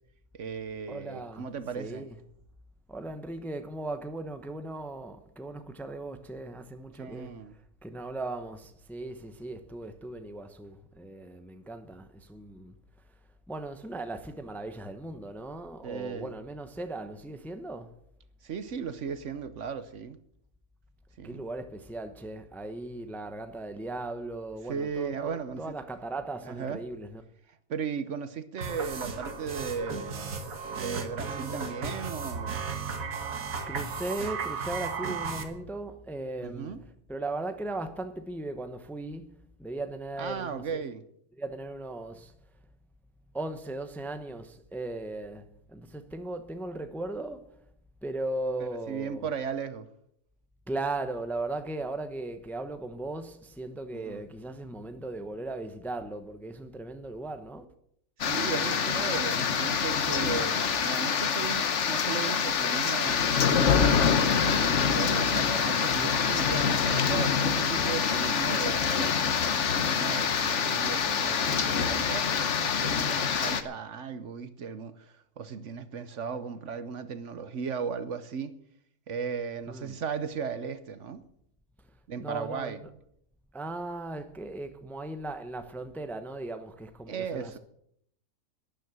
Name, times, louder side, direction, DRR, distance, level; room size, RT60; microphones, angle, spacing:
voice 1, 0.3-2.1 7.0-7.6 15.8-16.3 18.4-20.2 21.2-21.4 24.7-25.6 26.4-26.8 27.7-32.6 36.4-36.8 40.2-41.0 48.6-49.9 53.9-54.2 58.2-63.9 64.5-69.2 69.9-78.5 79.1-81.2 82.1-82.8 87.1-87.6, right 6 dB, 65° right, 1.2 m, -36 dB
voice 2, 0.9-1.5 1.7-2.2 2.9-7.3 7.8-12.7 13.5-17.9 21.2-27.2 33.7-36.8 37.1-40.8 41.4-42.3 43.3-47.5 48.0-49.3 50.7-57.7 79.7-80.0 82.2-82.9 83.5-87.6, right 2 dB, ahead, 0.8 m, -37 dB
sound 1, 28.6-35.4, right 5 dB, 90° right, 1.9 m, -35 dB
sound 2, 58.2-73.6, left 6 dB, 60° left, 1.3 m, -26 dB
12.0 x 10.5 x 7.6 m
omnidirectional pair, 1.4 m